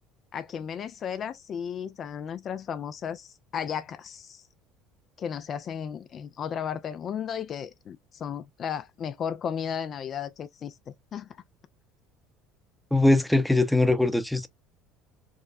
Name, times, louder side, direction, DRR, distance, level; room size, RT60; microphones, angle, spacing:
voice 1, 0.3-4.4 5.2-10.8 11.1-11.3, left 8 dB, 45° left, 0.3 m, -34 dB
voice 2, 12.9-14.5, left 2 dB, 5° left, 0.7 m, -21 dB
4.7 x 2.1 x 2.6 m
hypercardioid pair, 70°, 0 cm